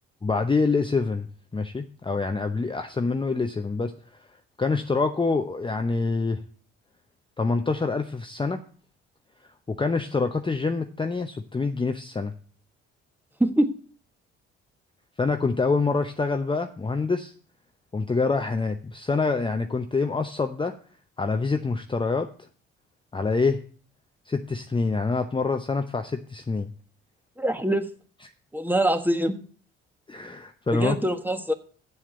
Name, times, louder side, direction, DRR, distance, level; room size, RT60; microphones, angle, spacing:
voice 1, 0.2-1.3 1.5-3.9 4.6-6.4 7.4-8.6 9.7-12.3 15.2-17.3 17.9-20.7 21.2-22.3 23.1-23.6 24.3-26.7 30.1-31.0, left 4 dB, 15° left, 6 dB, 0.8 m, -26 dB
voice 2, 27.4-27.9 28.5-29.4 30.7-31.5, right 1 dB, 5° right, 8 dB, 1.4 m, -23 dB
7.4 x 7.2 x 7.9 m, 0.43 s
hypercardioid pair, 55°, 29 cm